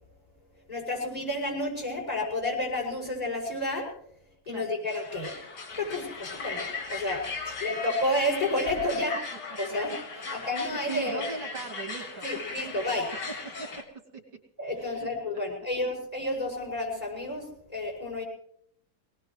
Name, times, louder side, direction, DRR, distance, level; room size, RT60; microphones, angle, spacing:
voice 1, 0.7-3.9 4.5-5.3 5.8-7.2 7.6-9.2 9.6-9.9 10.3-11.2 12.2-13.1 14.6-18.2, left 1 dB, 20° left, -2 dB, 6.1 m, -30 dB
voice 2, 4.4-4.8 7.5-7.8 10.1-12.5 13.3-13.9 14.1-14.2 14.8-15.1, right 4 dB, 80° right, 0 dB, 3.1 m, -40 dB
sound 1, 4.9-13.8, left 4 dB, 60° left, 2.4 m, -38 dB
23.0 x 19.0 x 3.2 m, 0.66 s
omnidirectional pair, 2.1 m